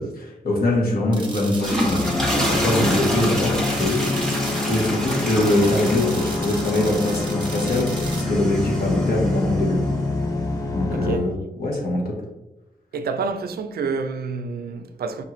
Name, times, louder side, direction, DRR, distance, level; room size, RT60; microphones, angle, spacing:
voice 1, 0.0-4.0 4.7-9.8 10.7-12.1, left 1 dB, 75° left, 1.1 m, -23 dB
sound 1, 1.1-8.2, right 3 dB, 30° right, 0.7 m, -37 dB
sound 2, 1.4-9.8, equal, 5° left, 0.8 m, -28 dB
sound 3, 1.8-11.2, left 3 dB, 20° left, 0.3 m, -26 dB
voice 2, 10.9-11.3 12.9-15.2, right 4 dB, 90° right, 0.4 m, -28 dB
5.4 x 2.4 x 3.0 m
wide cardioid pair, 150°, 15 cm